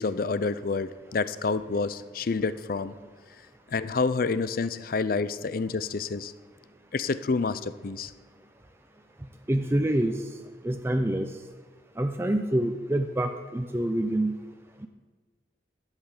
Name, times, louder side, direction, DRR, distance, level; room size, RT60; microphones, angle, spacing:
voice 1, 0.0-2.9 3.7-6.3 6.9-8.1, left 4 dB, 50° left, 14 dB, 0.5 m, -28 dB
voice 2, 9.5-10.3 10.6-11.3 12.0-14.4, right 1 dB, 15° right, 5 dB, 0.5 m, -26 dB
12.0 x 8.2 x 7.3 m, 1.4 s
head